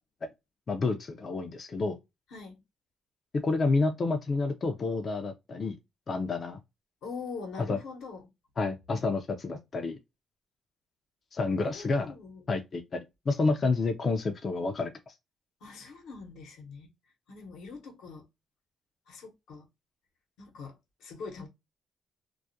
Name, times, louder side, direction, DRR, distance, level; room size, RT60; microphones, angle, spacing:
voice 1, 0.7-2.0 3.4-5.7 6.1-6.6 7.7-7.8 8.6-10.0 11.3-12.1 12.5-15.1, left 3 dB, 40° left, 0.4 m, -29 dB
voice 2, 2.3-2.6 7.0-8.3 11.6-12.5 15.6-16.9 17.3-18.2 19.1-19.7 20.4-21.5, left 4 dB, 85° left, 0.8 m, -43 dB
2.3 x 2.1 x 2.6 m
cardioid pair, 90°, 0 cm